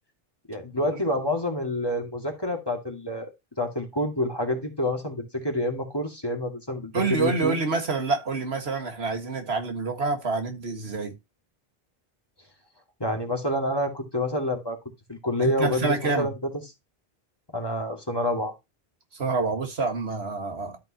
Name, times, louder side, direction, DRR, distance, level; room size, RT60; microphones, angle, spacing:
voice 1, 0.5-3.3 3.6-7.6 13.0-14.8 15.1-16.4 17.5-18.5, left 1 dB, 25° left, 2.2 m, -28 dB
voice 2, 6.9-11.1 15.4-16.3 19.2-20.8, right 4 dB, 90° right, 2.0 m, -27 dB
12.5 x 5.5 x 2.8 m
omnidirectional pair, 1.0 m